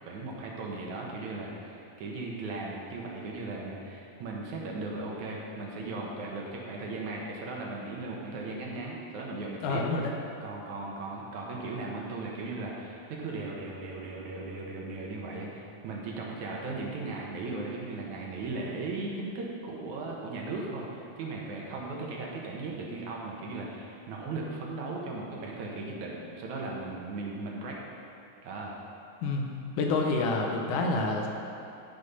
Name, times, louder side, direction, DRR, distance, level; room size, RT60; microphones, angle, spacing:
voice 1, 0.0-9.8 10.4-27.8 28.4-28.8, right 3 dB, 65° right, -2 dB, 2.4 m, -37 dB
voice 2, 9.6-10.1 29.2-29.5 29.8-31.3, left 3 dB, 80° left, 1 dB, 2.4 m, -28 dB
13.5 x 5.5 x 5.5 m, 2.8 s
omnidirectional pair, 3.7 m